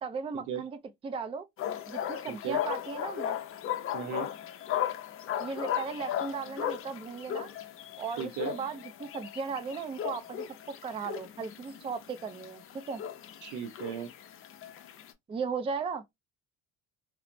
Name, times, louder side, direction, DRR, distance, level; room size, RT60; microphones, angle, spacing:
voice 1, 0.0-1.4 1.9-3.4 5.4-7.5 8.0-13.0 15.3-16.0, right 5 dB, 20° right, 0.4 m, -37 dB
sound 1, 1.6-15.1, left 10 dB, 50° left, 0.5 m, -37 dB
voice 2, 2.3-2.6 3.9-4.3 8.2-8.5 13.4-14.1, right 8 dB, 90° right, 0.7 m, -36 dB
3.0 x 2.0 x 2.5 m
cardioid pair, 110°, 29 cm